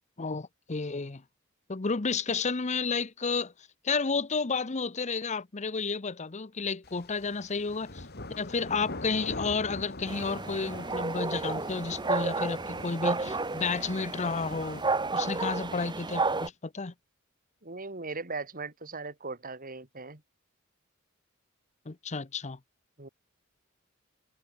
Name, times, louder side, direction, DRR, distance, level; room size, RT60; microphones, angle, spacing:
voice 1, 0.2-1.2 1.7-3.5 3.8-8.1 8.4-14.8 15.1-16.9 21.9-22.6, left 4 dB, 35° left, 0.8 m, -31 dB
sound 1, 6.8-14.8, left 2 dB, 50° left, 3.6 m, -44 dB
sound 2, 10.1-16.5, right 3 dB, 20° right, 1.2 m, -32 dB
voice 2, 17.6-20.2 23.0-23.1, right 3 dB, 45° right, 2.7 m, -39 dB
head